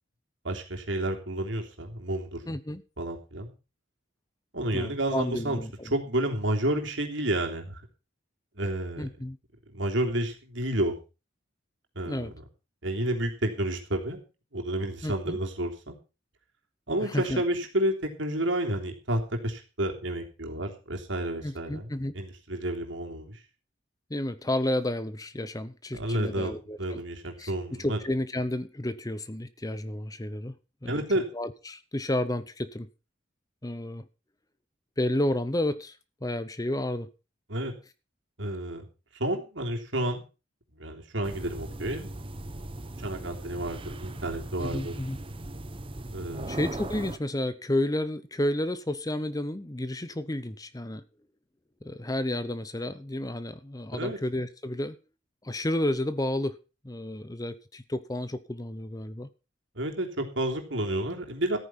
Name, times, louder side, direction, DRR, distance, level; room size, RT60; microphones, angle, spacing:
voice 1, 0.4-2.4 3.0-3.5 4.5-5.6 5.8-7.8 8.6-9.1 9.7-10.9 11.9-12.3 12.8-14.2 14.5-16.0 16.9-23.4 25.9-26.5 26.8-28.0 30.8-31.2 37.5-37.7 38.4-38.9 39.1-40.2 40.7-42.1 43.0-45.0 46.1-46.6 53.9-54.2 59.7-61.6, right 1 dB, 70° right, 3.3 m, -30 dB
voice 2, 2.5-2.8 4.7-5.9 9.0-9.4 12.0-12.3 15.0-15.4 17.0-17.4 21.4-22.1 24.1-27.0 27.4-27.5 27.8-30.5 30.8-31.0 31.3-32.9 33.6-34.0 35.0-36.0 36.2-37.1 44.6-45.2 46.5-51.0 51.8-55.0 55.4-56.6 56.8-59.3, left 1 dB, 20° left, 0.8 m, -31 dB
sound 1, 41.2-47.2, right 1 dB, 25° right, 0.9 m, -39 dB
14.0 x 9.4 x 5.6 m
head